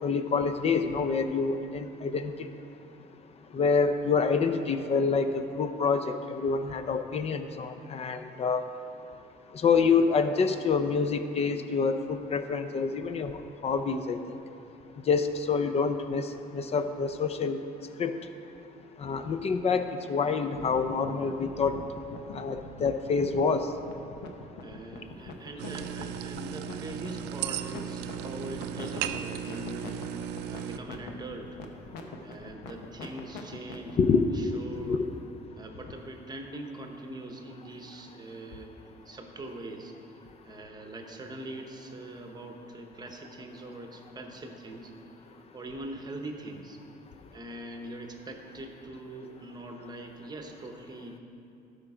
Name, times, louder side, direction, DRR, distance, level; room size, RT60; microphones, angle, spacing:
voice 1, 0.0-2.5 3.5-8.6 9.5-14.3 15.1-16.2 16.5-17.6 18.0-18.1 19.0-21.8 22.3-23.7 34.0-34.6 34.8-35.1, left 5 dB, 35° left, 9 dB, 0.6 m, -27 dB
sound 1, 20.5-33.9, left 4 dB, 85° left, 0.9 m, -43 dB
voice 2, 24.6-31.6 32.2-34.0 34.3-35.0 35.6-39.9 40.4-44.9 45.5-46.8 47.3-51.2, right 1 dB, 25° right, 3 dB, 1.0 m, -42 dB
sound 2, 25.6-30.8, right 10 dB, 90° right, 0.4 m, -36 dB
12.5 x 5.1 x 4.9 m, 2.7 s
cardioid pair, 110°, 17 cm